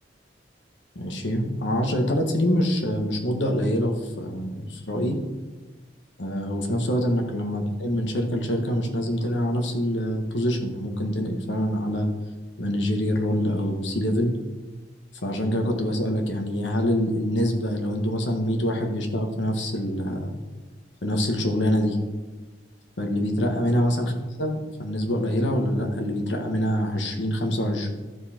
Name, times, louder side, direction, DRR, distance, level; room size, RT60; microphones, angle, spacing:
voice 1, 0.9-5.2 6.2-12.1 12.6-14.4 15.2-20.4 21.0-22.0 23.0-24.1 24.4-27.9, equal, 85° left, 4 dB, 1.4 m, -25 dB
14.0 x 4.7 x 4.4 m, 1.2 s
head